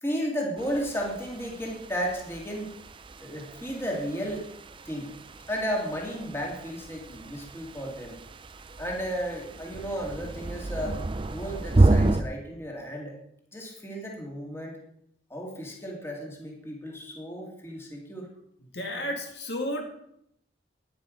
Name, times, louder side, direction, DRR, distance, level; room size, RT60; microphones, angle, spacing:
voice 1, 0.0-2.7 3.2-4.4 4.9-5.1 5.5-8.2 8.8-11.0 11.3-13.2 13.5-14.8 15.3-18.3, equal, 15° left, -1 dB, 2.2 m, -33 dB
sound 1, 0.6-12.2, right 2 dB, 25° right, 0.5 m, -30 dB
voice 2, 18.7-19.9, left 1 dB, 60° left, 2 dB, 2.2 m, -32 dB
10.5 x 10.0 x 5.2 m, 0.74 s
head